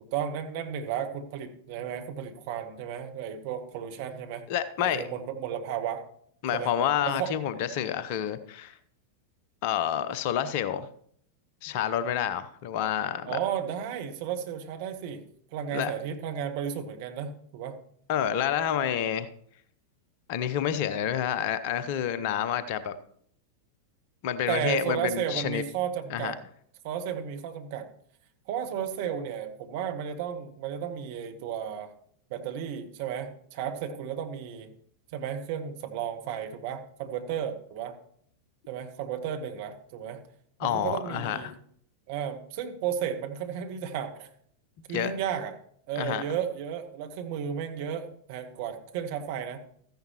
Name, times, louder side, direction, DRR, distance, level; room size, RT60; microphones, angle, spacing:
voice 1, 0.1-4.4 4.8-6.0 6.5-6.7 7.1-7.3 13.2-15.2 15.5-17.8 24.5-26.4 26.8-27.9 28.5-31.9 32.3-34.7 35.1-38.0 38.7-40.2 40.6-41.5 42.1-44.3 44.9-45.5 45.9-49.6, right 9 dB, 50° right, 5 dB, 1.2 m, -33 dB
voice 2, 4.5-5.1 6.4-8.8 9.6-10.9 11.6-13.4 15.7-15.9 18.1-19.3 20.3-22.9 24.2-25.6 26.1-26.3 40.6-41.5 44.9-45.1 46.0-46.2, left 10 dB, 50° left, 13 dB, 0.7 m, -28 dB
14.0 x 10.5 x 3.0 m, 0.63 s
figure-of-eight pair, 90°, 0 cm